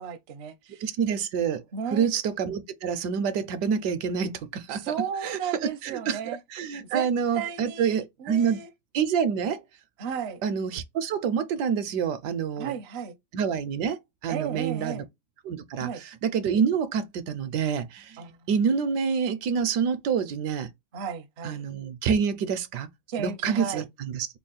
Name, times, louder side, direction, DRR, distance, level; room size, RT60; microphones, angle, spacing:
voice 1, 0.0-0.8 1.7-2.1 4.7-6.4 6.8-7.1 7.3-8.7 10.0-10.4 12.6-13.2 14.3-15.1 15.8-16.0 18.2-18.5 20.9-21.6 23.1-23.8, right 7 dB, 60° right, 0.7 m, -34 dB
voice 2, 0.8-1.6 1.9-4.9 5.2-5.4 5.8-8.6 8.9-9.6 10.4-12.7 13.3-15.0 15.4-20.7 21.4-22.9 23.2-24.3, right 7 dB, 75° right, 1.1 m, -27 dB
3.5 x 2.1 x 3.9 m
omnidirectional pair, 1.9 m